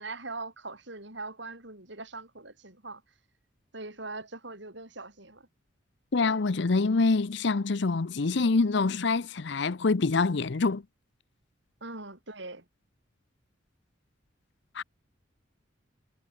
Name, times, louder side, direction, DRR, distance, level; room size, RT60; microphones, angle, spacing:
voice 1, 0.0-3.0 3.7-5.5 11.8-12.7, right 3 dB, 60° right, 7.2 m, -41 dB
voice 2, 6.1-10.8 14.7-14.8, left 3 dB, 60° left, 0.7 m, -25 dB
head